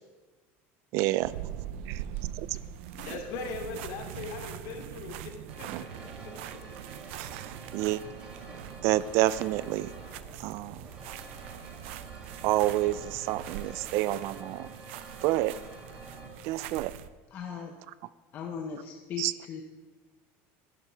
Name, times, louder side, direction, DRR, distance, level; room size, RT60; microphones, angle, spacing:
voice 1, 0.9-1.3 1.9-2.0 2.4-2.5 3.1-3.2 5.7-5.8 7.2-7.5 7.7-8.0 8.8-9.9 10.4-10.8 12.4-14.7 15.2-15.5 16.4-16.9 19.2-19.3, right 16 dB, 50° right, 17 dB, 0.3 m, -28 dB
sound 1, 1.2-17.1, right 11 dB, 90° right, 0.6 m, -42 dB
voice 2, 2.9-5.3 5.6-6.1, left 4 dB, 55° left, 2 dB, 2.6 m, -39 dB
sound 2, 5.5-16.3, right 2 dB, 15° right, 2.3 m, -48 dB
voice 3, 17.3-17.8 18.3-19.6, left 6 dB, 30° left, 2 dB, 0.7 m, -38 dB
11.5 x 10.5 x 6.1 m, 1.4 s
cardioid pair, 175°, 6 cm